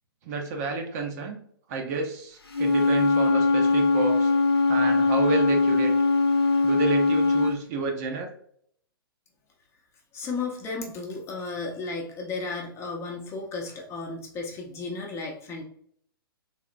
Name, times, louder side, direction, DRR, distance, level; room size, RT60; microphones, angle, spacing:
voice 1, 0.2-1.4 1.7-4.3 4.7-5.9 6.6-8.3, right 4 dB, 40° right, 3 dB, 0.7 m, -30 dB
Wind instrument woodwind instrument, 2.5-7.6, left 3 dB, 90° left, 0.7 m, -21 dB
voice 2, 10.1-15.6, left 3 dB, 20° left, 0 dB, 0.7 m, -34 dB
3.4 x 2.8 x 2.4 m, 0.64 s
figure-of-eight pair, 120°, 13 cm